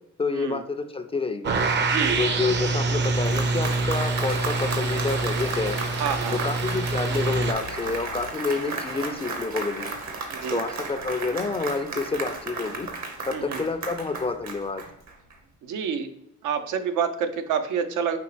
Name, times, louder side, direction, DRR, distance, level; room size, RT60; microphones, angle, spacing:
voice 1, 0.2-1.6 2.2-5.8 6.3-9.9 10.5-12.9 13.3-14.8, left 4 dB, 20° left, 8 dB, 0.3 m, -28 dB
sound 1, 1.4-7.5, right 3 dB, 35° right, 0.5 m, -26 dB
sound 2, 2.0-8.3, left 8 dB, 80° left, 0.5 m, -42 dB
Applause, 2.8-15.3, right 3 dB, 65° right, 0.9 m, -34 dB
voice 2, 6.0-6.4 10.3-10.6 13.3-13.6 15.6-16.1 16.4-18.2, right 7 dB, 85° right, 8 dB, 0.6 m, -28 dB
5.2 x 2.8 x 3.2 m, 0.80 s
cardioid pair, 90°, 30 cm